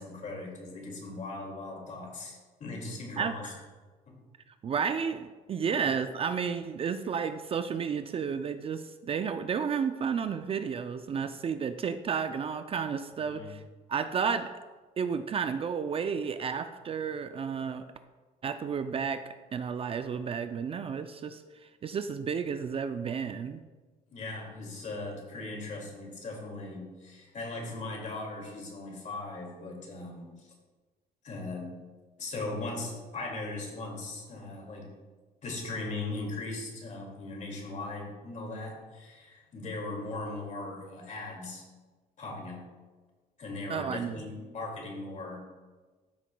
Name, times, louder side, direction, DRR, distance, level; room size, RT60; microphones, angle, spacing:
voice 1, 0.0-3.5 4.1-4.2 5.7-5.9 13.2-13.6 24.1-30.5 31.2-31.7 32.2-34.9 35.4-41.7 42.2-42.6 43.4-45.4, left 2 dB, 45° left, 0 dB, 2.2 m, -39 dB
voice 2, 4.6-13.6 13.9-14.5 15.0-17.9 18.4-21.4 21.8-23.6 43.7-44.2, right 6 dB, 35° right, 9 dB, 0.4 m, -32 dB
13.0 x 5.8 x 2.2 m, 1.3 s
cardioid pair, 110°, 17 cm